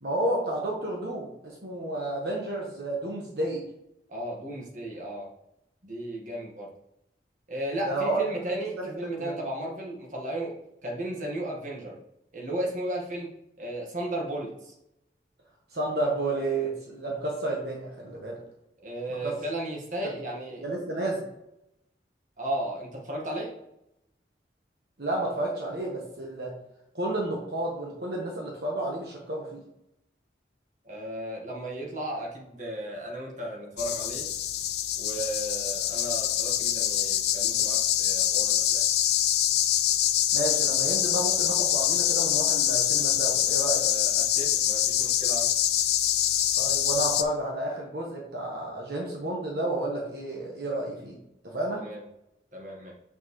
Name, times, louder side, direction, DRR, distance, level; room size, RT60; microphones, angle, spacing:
voice 1, 0.0-3.6 7.8-8.2 8.5-9.4 15.7-18.4 19.1-19.4 20.0-20.1 20.6-21.3 25.0-26.5 26.9-29.6 40.3-43.8 46.6-51.2 51.4-51.8, right 1 dB, 65° right, -2 dB, 1.3 m, -31 dB
voice 2, 4.1-5.3 5.8-6.7 7.5-12.0 12.3-13.3 13.6-14.7 18.8-20.6 22.4-23.6 30.9-34.3 35.0-38.8 43.8-45.5 51.8-52.0 52.5-52.9, right 1 dB, 45° right, -2 dB, 1.7 m, -35 dB
sound 1, 33.8-47.2, left 11 dB, 70° left, 0.5 m, -25 dB
7.2 x 6.3 x 3.2 m, 0.84 s
head